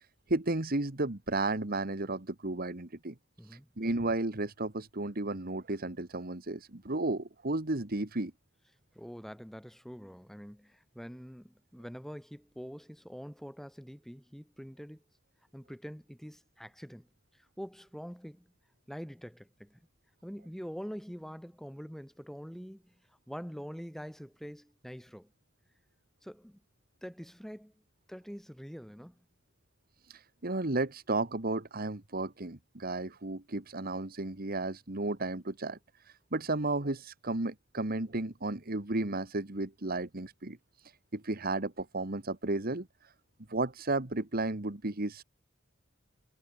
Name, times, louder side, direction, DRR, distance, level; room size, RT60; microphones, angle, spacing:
voice 1, 0.0-3.2 3.4-8.3 30.0-43.1 43.5-45.2, right 2 dB, 50° right, 1.7 m, -33 dB
voice 2, 3.4-3.7 8.9-15.0 15.5-17.1 17.3-18.5 18.9-19.8 20.2-22.9 23.3-25.3 26.2-26.6 27.0-27.7 28.1-29.2, equal, ahead, 8.0 m, -45 dB
head